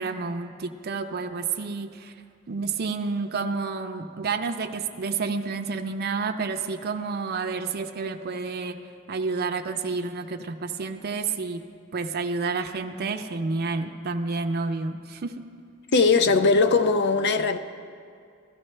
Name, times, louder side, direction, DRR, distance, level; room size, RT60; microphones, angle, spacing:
voice 1, 0.0-2.1 2.5-8.8 9.1-11.6 11.9-15.4, right 4 dB, 50° right, 0.5 m, -30 dB
voice 2, 15.9-17.6, left 4 dB, 55° left, 0.5 m, -20 dB
16.0 x 13.0 x 3.3 m
head